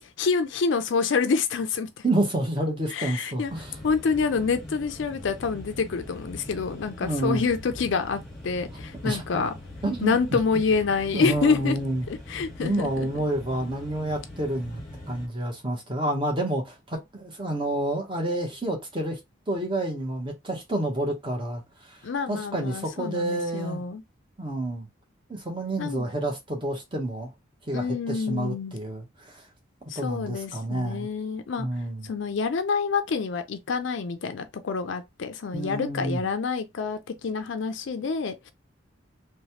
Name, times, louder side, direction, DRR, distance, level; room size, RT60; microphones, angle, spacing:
voice 1, 0.0-2.0 2.9-3.5 3.8-9.5 10.0-11.8 12.3-13.1 22.0-24.0 25.8-26.0 27.7-28.8 29.9-31.7 32.0-38.5, left 5 dB, 65° left, 0.4 m, -27 dB
voice 2, 2.0-3.8 7.0-7.4 9.0-9.2 9.8-10.4 11.1-12.1 12.6-14.8 15.1-19.2 19.5-22.0 22.3-23.8 24.4-24.9 25.3-27.3 27.7-29.5 29.9-31.1 31.6-32.1 35.5-36.2, right 1 dB, 25° right, 0.9 m, -29 dB
sound 1, 3.4-15.3, left 1 dB, ahead, 1.2 m, -42 dB
3.1 x 2.2 x 2.8 m
head